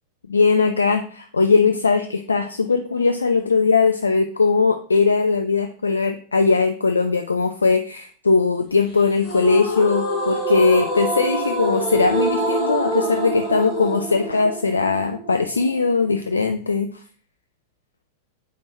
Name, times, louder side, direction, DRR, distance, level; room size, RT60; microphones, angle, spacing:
voice 1, 0.3-16.9, left 4 dB, 75° left, 7 dB, 0.4 m, -19 dB
sound 1, 9.2-16.3, right 1 dB, 25° left, 2.3 m, -26 dB
7.7 x 5.1 x 3.2 m, 0.43 s
figure-of-eight pair, 90°, 0 cm